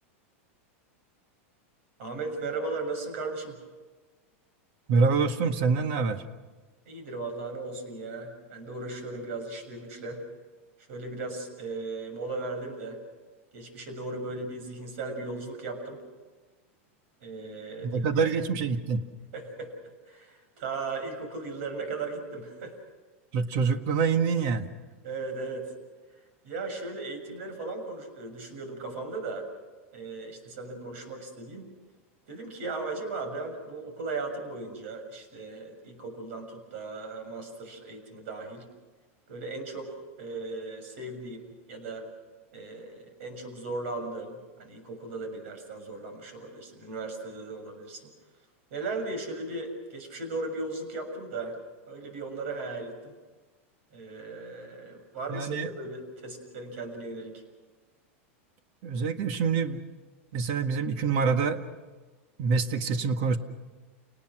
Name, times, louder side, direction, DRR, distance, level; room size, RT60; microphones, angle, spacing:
voice 1, 2.0-3.6 6.9-10.2 10.9-13.0 13.5-16.0 17.2-18.1 19.3-19.7 20.1-22.8 25.0-25.7 26.4-29.5 29.9-31.7 32.3-38.7 39.3-42.1 42.5-48.1 48.7-51.6 51.9-53.1 53.9-57.4, right 3 dB, 70° right, 6 dB, 6.9 m, -37 dB
voice 2, 4.9-6.2 17.8-19.0 23.3-24.7 55.3-55.7 58.8-59.8 60.3-61.7 62.4-63.4, right 5 dB, 55° right, 8 dB, 1.8 m, -26 dB
29.5 x 19.0 x 6.3 m, 1.3 s
supercardioid pair, 140°, 7 cm